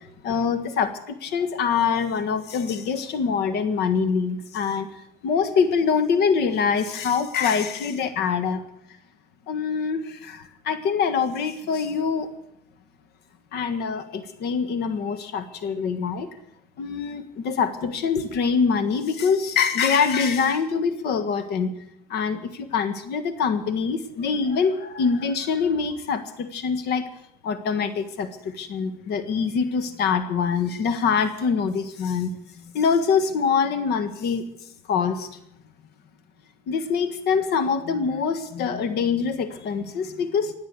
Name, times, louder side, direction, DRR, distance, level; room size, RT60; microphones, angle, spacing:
voice 1, 0.0-4.9 5.2-8.6 9.5-12.3 13.5-16.3 16.8-21.7 22.1-27.1 27.4-32.3 32.6-34.5 34.9-35.3 36.7-40.5, left 6 dB, 75° left, 11 dB, 1.6 m, -24 dB
20.0 x 8.0 x 8.2 m, 0.75 s
cardioid pair, 110°, 17 cm